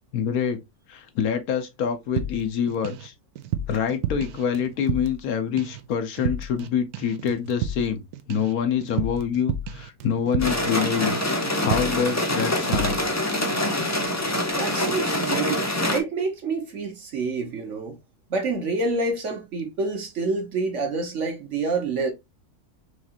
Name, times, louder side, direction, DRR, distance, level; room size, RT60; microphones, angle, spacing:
voice 1, 0.1-0.6 0.9-3.1 3.7-8.0 8.3-11.2 11.6-13.0, left 7 dB, 70° left, 1.2 m, -26 dB
sound 1, 2.2-3.1 3.4-5.3 5.6-5.9 6.2-6.7 6.9-10.8 11.0-11.3 11.6-12.1 12.4-13.0, right 6 dB, 75° right, 1.1 m, -31 dB
sound 2, 10.4-16.0, left 1 dB, 20° left, 0.5 m, -25 dB
voice 2, 14.5-17.9 18.3-22.1, right 3 dB, 55° right, 1.2 m, -27 dB
4.9 x 3.2 x 2.8 m
omnidirectional pair, 1.7 m